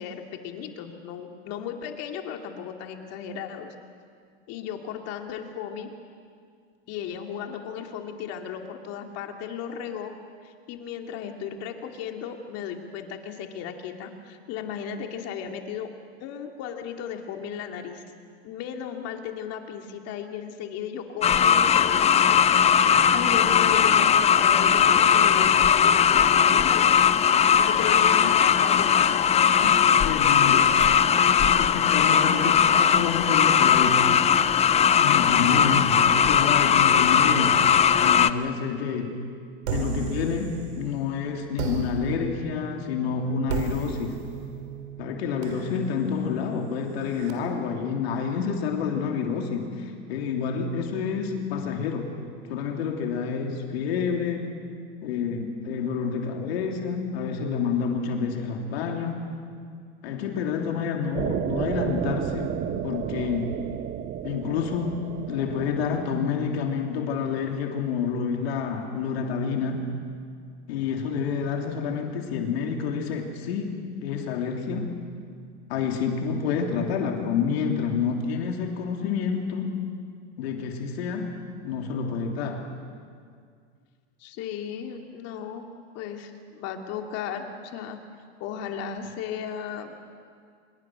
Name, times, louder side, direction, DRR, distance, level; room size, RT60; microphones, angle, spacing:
voice 1, 0.0-3.7 4.5-5.9 6.9-10.1 10.4-15.9 16.2-18.0 18.4-29.4 84.2-85.7 85.9-88.0 88.4-90.0, left 8 dB, 50° left, 4 dB, 2.6 m, -35 dB
sound 1, 21.2-38.3, left 8 dB, 20° left, 0.6 m, -19 dB
voice 2, 29.4-30.7 31.4-34.1 34.9-37.6 38.0-39.2 39.7-44.2 45.0-52.1 52.5-54.5 55.0-59.3 60.0-62.5 62.8-63.5 64.2-69.9 70.7-75.0 75.7-79.8 80.4-81.3 81.6-82.7, left 6 dB, 75° left, 2 dB, 3.2 m, -28 dB
sound 2, 39.6-41.0 41.6-47.3, right 6 dB, 85° right, 3.6 m, -35 dB
sound 3, 61.1-66.2, right 11 dB, 35° right, 0.9 m, -32 dB
26.0 x 23.0 x 6.3 m, 2.1 s
supercardioid pair, 115°, 31 cm